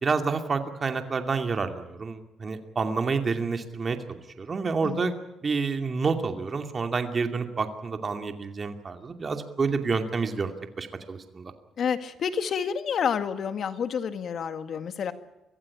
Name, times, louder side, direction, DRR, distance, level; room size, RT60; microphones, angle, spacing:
voice 1, 0.0-5.1 5.4-11.5, right 4 dB, 40° right, 6 dB, 2.5 m, -29 dB
voice 2, 4.8-5.2 11.8-15.1, left 7 dB, 60° left, 10 dB, 1.9 m, -29 dB
24.5 x 15.5 x 8.6 m, 0.97 s
cardioid pair, 90°, 0 cm